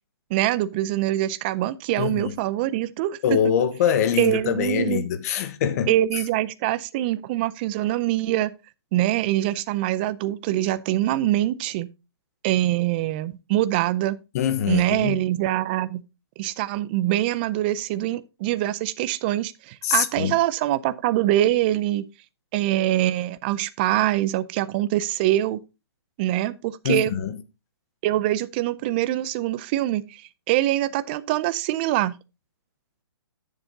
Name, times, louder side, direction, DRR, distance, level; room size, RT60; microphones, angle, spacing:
voice 1, 0.3-3.4 4.2-5.0 5.9-8.5 8.9-11.9 12.4-14.2 14.7-16.0 16.4-22.1 22.5-25.6 26.2-27.1 28.0-30.2 30.5-32.2, right 14 dB, 25° right, 0.4 m, -24 dB
voice 2, 2.0-2.4 3.2-5.9 14.3-15.2 19.8-20.4 26.8-27.4, left 8 dB, 40° left, 1.0 m, -23 dB
11.5 x 7.2 x 2.7 m
hypercardioid pair, 155°, 13 cm